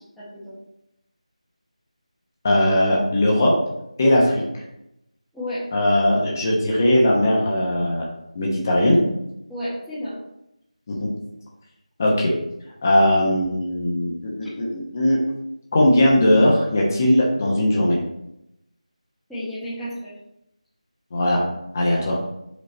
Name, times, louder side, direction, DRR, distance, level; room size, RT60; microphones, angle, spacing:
voice 1, 0.2-0.5 5.3-5.7 9.5-10.2 19.3-20.1, equal, ahead, -15 dB, 0.9 m, -31 dB
voice 2, 2.4-3.6 4.0-4.4 5.7-8.1 8.3-9.0 10.9-11.1 12.0-12.3 12.8-15.2 15.7-18.0 21.1-21.4 21.7-22.2, left 1 dB, 25° left, -2 dB, 1.0 m, -19 dB
5.2 x 4.5 x 4.4 m, 0.83 s
figure-of-eight pair, 165°, 4 cm